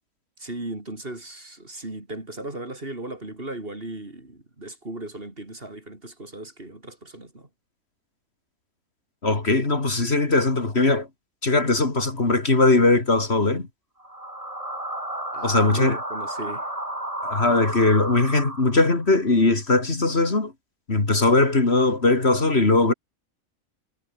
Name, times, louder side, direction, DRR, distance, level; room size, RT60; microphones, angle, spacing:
voice 1, 0.4-7.5 15.3-16.7, right 2 dB, 40° right, 4.4 m, -36 dB
voice 2, 9.2-11.1 11.4-13.7 15.4-16.0 17.2-20.5 20.9-22.9, left 2 dB, 45° left, 3.1 m, -20 dB
sound 1, 14.0-19.1, right 1 dB, 25° right, 5.4 m, -32 dB
omnidirectional pair, 1.5 m